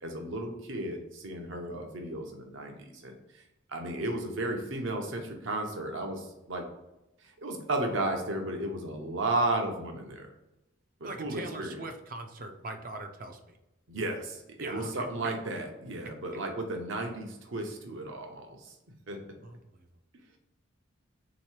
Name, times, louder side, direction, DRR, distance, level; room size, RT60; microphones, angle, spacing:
voice 1, 0.0-3.1 3.7-6.6 7.2-10.3 11.2-11.8 13.9-18.7 19.1-19.2, right 2 dB, 65° right, 3 dB, 0.8 m, -34 dB
voice 2, 11.0-13.6 14.6-14.9 15.2-15.3 19.4-19.6, right 2 dB, 40° right, 6 dB, 0.5 m, -40 dB
3.6 x 3.0 x 4.5 m, 0.94 s
head